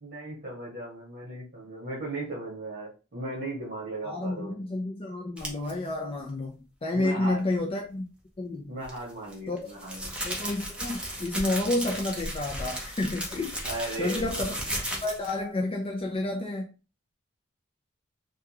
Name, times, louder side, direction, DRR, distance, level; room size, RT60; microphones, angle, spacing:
voice 1, 0.0-4.6 6.9-7.4 8.7-10.1 13.7-14.4, right 2 dB, 45° right, 1.3 m, -36 dB
voice 2, 4.0-8.1 8.4-8.7 9.5-9.6 10.2-13.7 14.0-14.5 15.0-16.7, left 2 dB, 30° left, 0.4 m, -30 dB
sound 1, 5.4-5.7 8.8-15.4, equal, 5° right, 0.8 m, -35 dB
3.5 x 2.3 x 2.9 m
head